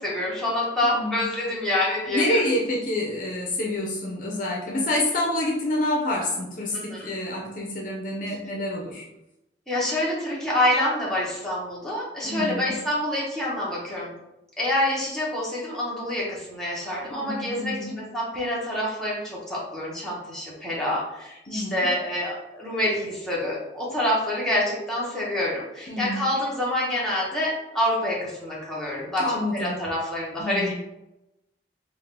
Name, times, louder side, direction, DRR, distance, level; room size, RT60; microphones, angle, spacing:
voice 1, 0.0-2.4 6.7-7.1 9.7-14.1 14.6-30.7, left 1 dB, 5° left, -7 dB, 1.1 m, -27 dB
voice 2, 0.8-1.2 2.1-9.0 12.2-12.7 17.1-18.0 21.5-21.9 25.9-26.3 29.2-29.7 30.4-30.7, left 1 dB, 50° left, -1 dB, 0.6 m, -27 dB
3.7 x 2.4 x 3.4 m, 0.91 s
head